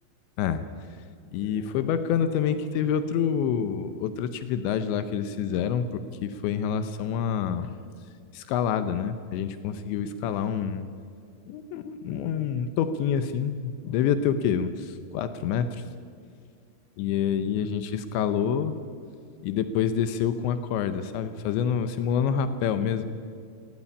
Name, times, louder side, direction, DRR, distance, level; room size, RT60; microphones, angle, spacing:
voice 1, 1.3-5.9 6.2-7.7 8.3-10.9 11.5-15.8 17.0-18.8 19.4-23.1, left 8 dB, 75° left, 11 dB, 2.8 m, -27 dB
17.5 x 16.5 x 9.9 m, 2.2 s
omnidirectional pair, 5.8 m